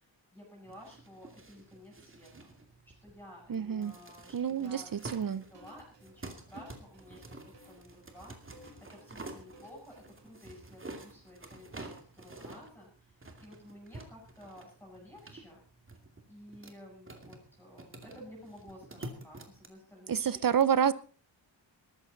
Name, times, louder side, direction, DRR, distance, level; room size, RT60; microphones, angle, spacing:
voice 1, 0.0-2.5 3.0-7.2 7.6-8.6 8.9-15.6 16.3-20.4, equal, 5° left, 8.0 m, -53 dB
sound 1, 0.6-19.7, right 2 dB, 25° right, 2.4 m, -49 dB
voice 2, 3.5-3.9 4.3-5.4 20.1-20.9, right 8 dB, 50° right, 0.7 m, -28 dB
sound 2, 4.6-10.2, left 1 dB, 70° right, 5.6 m, -58 dB
20.0 x 14.5 x 4.0 m
wide cardioid pair, 170°, 45 cm